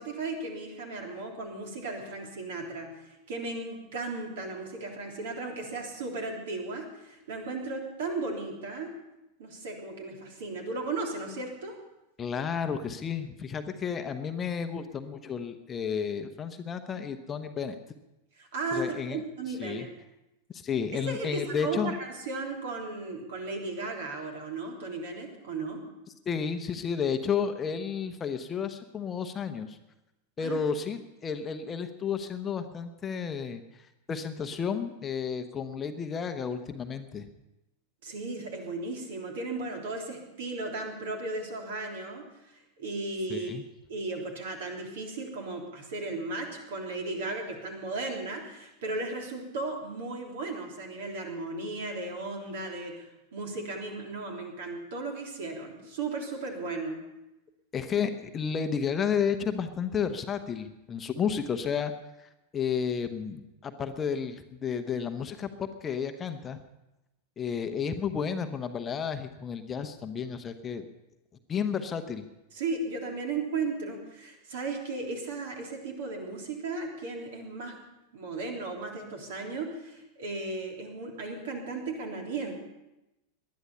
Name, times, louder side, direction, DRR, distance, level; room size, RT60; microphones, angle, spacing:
voice 1, 0.0-8.9 9.4-11.8 18.4-19.9 20.9-25.8 30.4-30.6 38.0-42.3 42.5-43.5 43.9-57.0 72.5-77.8 78.1-82.5, right 3 dB, 55° right, 2 dB, 3.4 m, -35 dB
voice 2, 12.2-17.8 18.7-19.2 19.6-19.9 20.5-22.0 26.3-29.8 30.4-37.3 43.3-43.6 57.7-61.9 62.2-66.6 67.4-70.8 71.5-72.3, left 6 dB, 20° left, 8 dB, 1.0 m, -32 dB
19.5 x 11.5 x 5.6 m, 0.95 s
figure-of-eight pair, 90°, 0 cm